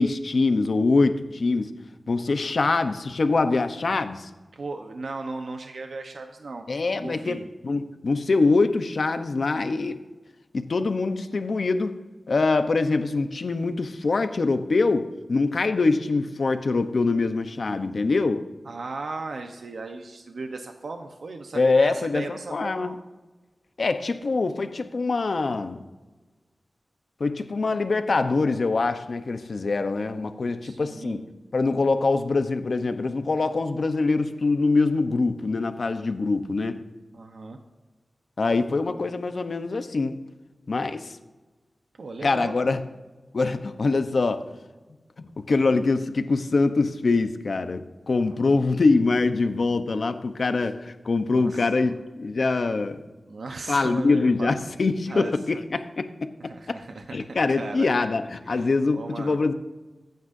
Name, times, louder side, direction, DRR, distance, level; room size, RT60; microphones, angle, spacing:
voice 1, 0.0-1.7 2.1-4.3 6.7-10.0 10.5-12.0 12.3-18.5 21.5-22.2 22.5-22.9 23.8-25.8 27.2-31.2 31.5-36.8 38.4-40.2 40.7-41.1 42.2-42.8 43.3-44.5 45.2-53.1 53.7-56.3 56.7-56.8 57.1-59.5, left 3 dB, 65° left, 9 dB, 0.9 m, -24 dB
voice 2, 4.5-6.7 7.0-7.5 18.6-23.0 30.6-31.3 37.1-37.6 42.0-42.8 48.3-48.4 50.6-50.7 51.3-52.0 53.3-54.5 55.1-55.3 56.4-57.9 58.5-58.7 58.9-59.4, right 3 dB, 85° right, 4 dB, 0.9 m, -37 dB
24.0 x 9.3 x 2.7 m, 1.2 s
wide cardioid pair, 95°, 0 cm